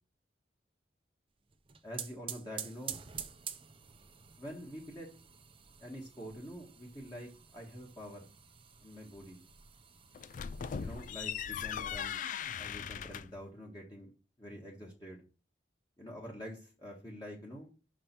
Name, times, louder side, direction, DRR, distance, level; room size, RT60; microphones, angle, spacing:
sound 1, 1.5-12.1, right 8 dB, 30° right, 0.6 m, -49 dB
voice 1, 1.8-3.0 4.4-5.1 5.8-8.3 8.8-9.4 10.8-12.2 12.6-14.1 14.4-15.2 16.0-17.7, equal, 20° left, -3 dB, 1.6 m, -46 dB
sound 2, 10.1-13.4, left 8 dB, 45° left, 0.3 m, -39 dB
5.7 x 5.1 x 5.9 m, 0.33 s
head